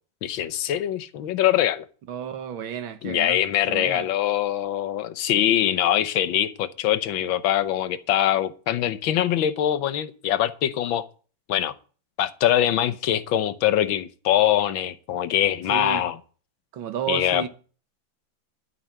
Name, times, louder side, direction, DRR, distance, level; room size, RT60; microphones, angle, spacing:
voice 1, 0.2-1.9 3.0-11.0 11.5-11.7 12.2-16.2 17.1-17.5, left 11 dB, 80° left, 1.6 m, -23 dB
voice 2, 2.1-3.4 3.7-4.1 15.7-16.1 16.7-17.5, right 9 dB, 85° right, 2.0 m, -31 dB
12.5 x 5.6 x 8.7 m
omnidirectional pair, 2.1 m